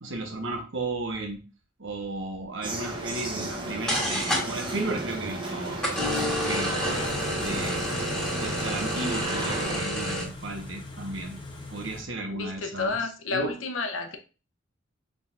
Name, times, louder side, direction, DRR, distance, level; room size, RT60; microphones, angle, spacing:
voice 1, 0.0-1.4 1.8-5.9 6.4-8.0 8.4-11.4 11.7-13.5, right 2 dB, 70° right, 1.1 m, -34 dB
sound 1, 2.6-9.8, right 1 dB, 25° right, 0.8 m, -34 dB
sound 2, 3.6-3.7 3.9-4.7 5.8-10.2, equal, 5° left, 1.4 m, -29 dB
Car / Idling, 6.9-12.0, left 2 dB, 25° left, 0.8 m, -42 dB
voice 2, 12.3-14.2, left 4 dB, 85° left, 0.8 m, -31 dB
5.8 x 3.8 x 2.4 m
head